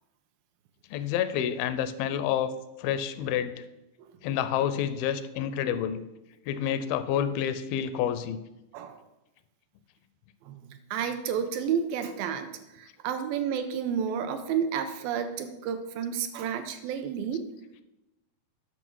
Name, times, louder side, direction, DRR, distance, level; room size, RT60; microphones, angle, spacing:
voice 1, 0.9-2.5 2.8-3.6 4.2-6.0 6.5-8.4, left 9 dB, 85° left, 12 dB, 2.3 m, -28 dB
voice 2, 10.4-17.4, right 7 dB, 80° right, 8 dB, 2.3 m, -31 dB
9.9 x 6.2 x 4.6 m, 0.95 s
omnidirectional pair, 4.3 m